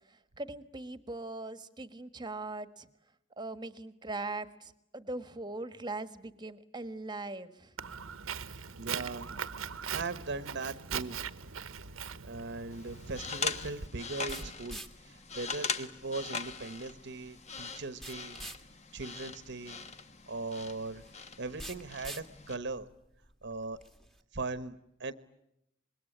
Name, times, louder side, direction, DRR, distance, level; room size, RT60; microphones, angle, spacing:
voice 1, 0.1-2.9 3.4-7.7, right 2 dB, 20° right, 11 dB, 1.4 m, -40 dB
Walk footsteps, 7.8-13.9, right 7 dB, 90° right, 1.1 m, -40 dB
voice 2, 8.8-9.4 9.7-11.4 12.2-18.5 18.9-19.8 20.3-21.0 21.4-22.9 23.4-23.8 24.3-25.1, right 3 dB, 55° right, 13 dB, 1.1 m, -39 dB
sound 1, 11.9-24.2, right 1 dB, ahead, 1.6 m, -50 dB
sound 2, 12.7-22.6, left 5 dB, 35° left, 1.3 m, -41 dB
26.0 x 21.5 x 10.0 m, 0.83 s
head